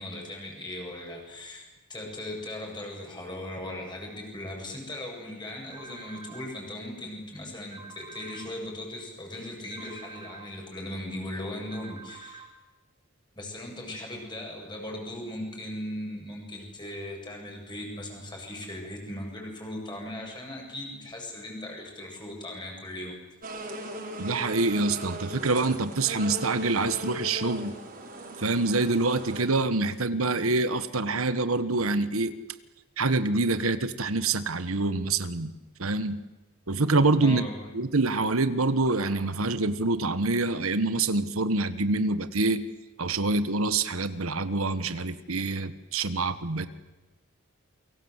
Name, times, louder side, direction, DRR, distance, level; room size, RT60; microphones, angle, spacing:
voice 1, 0.0-12.4 13.4-23.2 37.2-37.7, left 1 dB, 20° left, 1 dB, 7.9 m, -38 dB
sound 1, 5.7-6.5 7.7-8.5 9.7-10.5 11.7-12.5, right 5 dB, 20° right, 4.9 m, -46 dB
sound 2, 23.4-29.4, right 1 dB, 40° right, 5.1 m, -38 dB
voice 2, 24.2-27.7 28.4-32.3 33.0-35.5 35.8-36.2 36.7-37.4 37.7-42.7 43.0-46.7, right 3 dB, 80° right, 12 dB, 1.3 m, -26 dB
29.0 x 23.5 x 8.2 m, 1.1 s
head